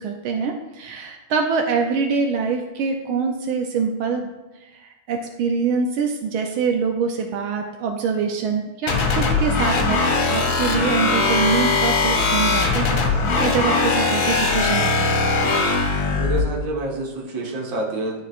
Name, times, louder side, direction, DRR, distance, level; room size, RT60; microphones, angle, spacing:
voice 1, 0.0-4.3 4.8-10.0 10.3-13.0 13.4-15.2, right 5 dB, 85° right, 3 dB, 1.4 m, -24 dB
sound 1, 8.9-16.4, left 3 dB, 75° left, 1.8 m, -20 dB
voice 2, 16.1-18.2, right 2 dB, 50° right, -2 dB, 1.6 m, -27 dB
11.5 x 4.6 x 2.5 m, 1.1 s
omnidirectional pair, 2.2 m